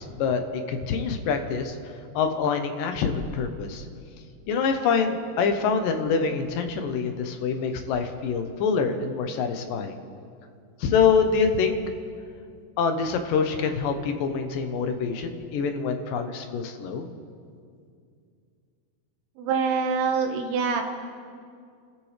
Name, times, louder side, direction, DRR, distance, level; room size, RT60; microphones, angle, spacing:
voice 1, 0.0-1.8 2.1-3.9 4.5-10.0 10.8-11.8 12.8-17.1, left 5 dB, 70° left, 6 dB, 2.4 m, -25 dB
voice 2, 19.4-20.8, right 5 dB, 75° right, 3 dB, 3.3 m, -25 dB
29.0 x 13.5 x 3.3 m, 2.3 s
omnidirectional pair, 4.6 m